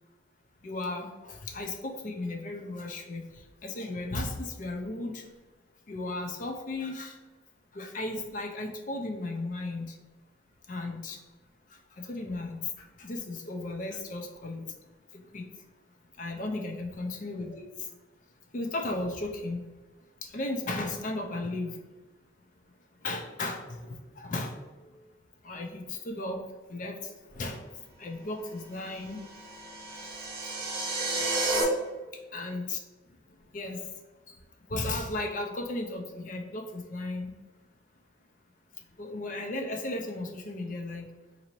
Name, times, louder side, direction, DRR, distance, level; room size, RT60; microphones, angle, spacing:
voice 1, 0.6-5.3 5.9-7.2 7.7-10.0 10.7-11.2 11.7-14.7 15.1-15.6 16.1-18.0 18.5-19.7 20.2-21.8 23.0-25.1 25.4-26.4 26.7-29.2 29.5-30.0 30.9-31.5 32.3-32.8 33.1-34.4 34.7-37.3 38.8-41.1, left 2 dB, 40° left, 2 dB, 0.5 m, -36 dB
sound 1, 29.1-31.6, right 2 dB, 50° right, 0.9 m, -31 dB
4.0 x 2.6 x 3.0 m, 1.2 s
head